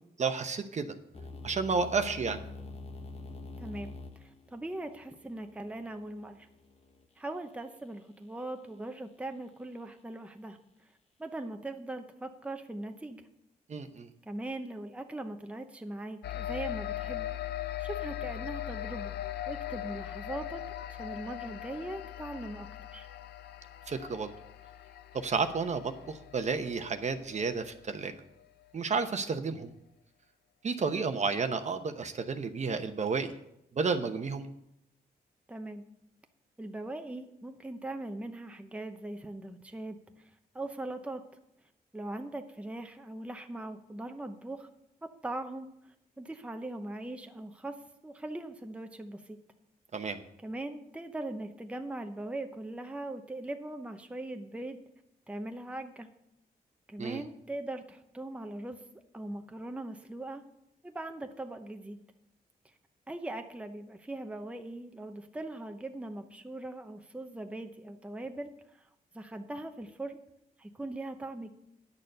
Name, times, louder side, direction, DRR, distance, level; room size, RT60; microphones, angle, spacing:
voice 1, 0.2-0.9 1.4-2.4 13.7-14.1 23.9-24.3 25.1-28.1 28.7-29.7 30.6-33.3 33.7-34.5 49.9-50.2 57.0-57.2, right 4 dB, 45° right, 8 dB, 0.9 m, -31 dB
sound 1, 1.1-7.1, left 3 dB, 40° left, 1.2 m, -46 dB
voice 2, 3.6-3.9 4.2-6.5 7.2-10.6 11.2-13.3 14.3-17.3 17.8-19.2 19.5-20.6 20.9-22.7 22.9-23.1 35.5-35.8 36.6-40.3 40.5-41.2 41.9-44.7 45.0-49.4 50.0-50.1 50.4-54.8 55.3-56.1 56.9-58.8 59.1-60.4 60.8-62.0 63.1-68.9 69.1-70.2 70.6-71.5, right 1 dB, 5° right, 6 dB, 0.8 m, -40 dB
sound 2, 16.2-28.0, left 13 dB, 85° left, 0.5 m, -40 dB
9.7 x 6.6 x 6.7 m, 0.80 s
cardioid pair, 100°, 16 cm